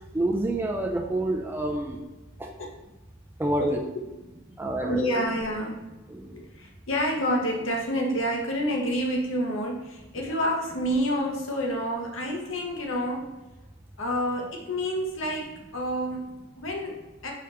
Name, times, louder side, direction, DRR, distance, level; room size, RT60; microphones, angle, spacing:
voice 1, 0.1-2.0 2.4-2.5 3.4-3.8 4.6-5.0 6.1-6.3, right 1 dB, 10° right, 1 dB, 0.3 m, -27 dB
voice 2, 4.8-5.8 6.3-13.3 14.0-17.3, equal, 70° left, 0 dB, 0.9 m, -28 dB
4.8 x 2.9 x 3.3 m, 1.1 s
head